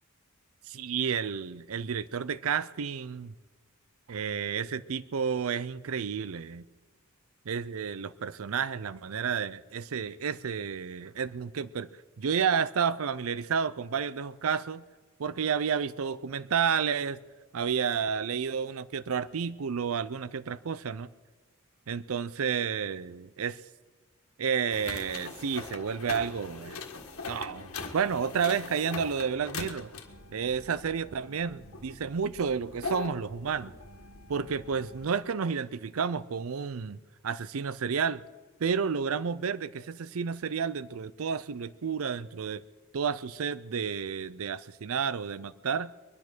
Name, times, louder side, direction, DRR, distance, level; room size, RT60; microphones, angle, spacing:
voice 1, 0.7-3.3 4.1-6.6 7.5-11.9 12.2-14.8 15.2-17.2 17.5-21.1 21.9-23.6 24.4-26.8 27.3-29.9 30.3-33.7 34.3-38.2 38.6-42.6 42.9-45.9, right 6 dB, 70° right, 0.5 m, -31 dB
sound 1, 24.7-35.2, left 4 dB, 75° left, 1.6 m, -42 dB
22.0 x 10.5 x 6.1 m
head